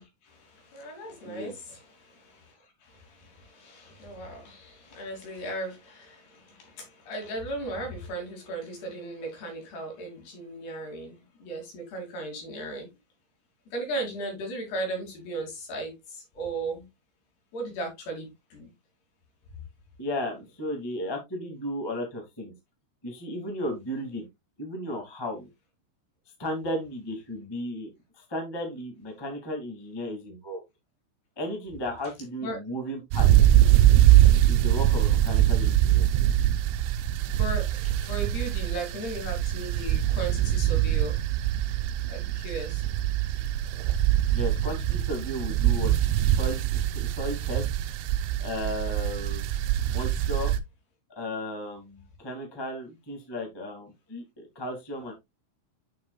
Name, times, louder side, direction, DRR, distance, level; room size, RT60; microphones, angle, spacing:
voice 1, 0.0-12.9 13.7-16.9 17.5-18.7 32.4-32.6 37.2-41.2 42.1-42.8, right 2 dB, 60° left, 4.7 m, -37 dB
voice 2, 20.0-22.5 23.0-24.2 24.6-25.5 26.4-30.6 31.3-33.5 34.5-36.1 44.3-45.9 46.2-46.7 46.9-47.6 48.4-49.5 49.9-50.5 51.1-54.2 54.5-55.1, left 1 dB, 30° left, 0.4 m, -34 dB
sound 1, 33.1-50.6, right 13 dB, 80° right, 3.0 m, -23 dB
8.5 x 6.7 x 2.4 m
omnidirectional pair, 5.5 m